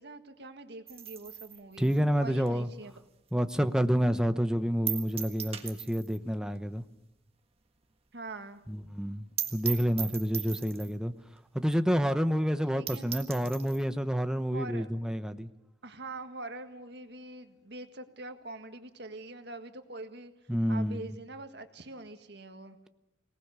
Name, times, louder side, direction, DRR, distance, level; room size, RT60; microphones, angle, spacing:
voice 1, 0.0-1.9 2.2-2.9 8.1-8.6 12.7-13.1 14.5-14.9 15.8-20.3 20.7-22.8, right 2 dB, 70° right, 8 dB, 1.8 m, -44 dB
sound 1, 0.9-3.5 3.8-3.9 4.3-4.4 4.9-6.3 6.5-6.6 6.9-7.0 7.4-7.5 7.8-7.9 8.1-8.2 8.6-8.7 9.0-9.1 9.4-11.0 11.7-11.8 12.1-12.2 12.6-12.7 12.9-13.8, right 10 dB, 35° right, 1.6 m, -38 dB
voice 2, 1.8-2.7 3.3-6.8 8.7-11.1 11.5-15.5 20.5-21.1, equal, 5° right, 9 dB, 0.9 m, -29 dB
24.0 x 19.0 x 6.9 m, 0.88 s
head